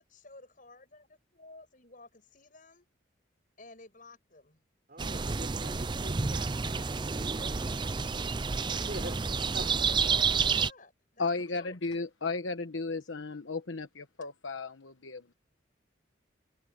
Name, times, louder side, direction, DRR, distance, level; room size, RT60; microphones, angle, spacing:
voice 1, 0.0-2.9 3.6-4.6 7.4-8.2 9.0-9.3 9.6-11.8, left 2 dB, 45° left, 7.4 m, -54 dB
voice 2, 4.9-7.4 8.7-9.1 9.5-9.8, right 1 dB, 45° right, 5.1 m, -45 dB
sound 1, 5.0-10.7, right 5 dB, 25° right, 0.5 m, -30 dB
voice 3, 11.2-15.3, left 3 dB, 80° left, 1.1 m, -35 dB
head